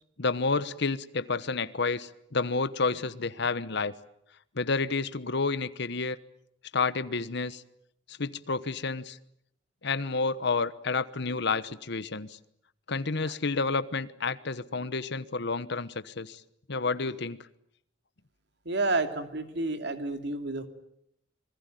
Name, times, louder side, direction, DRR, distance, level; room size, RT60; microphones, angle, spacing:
voice 1, 0.2-3.9 4.5-6.2 6.7-7.6 8.1-9.2 9.8-12.4 12.9-16.4 16.7-17.5, left 4 dB, 65° left, 1.1 m, -30 dB
voice 2, 18.6-20.7, right 2 dB, 60° right, 2.7 m, -30 dB
27.0 x 21.0 x 9.1 m
head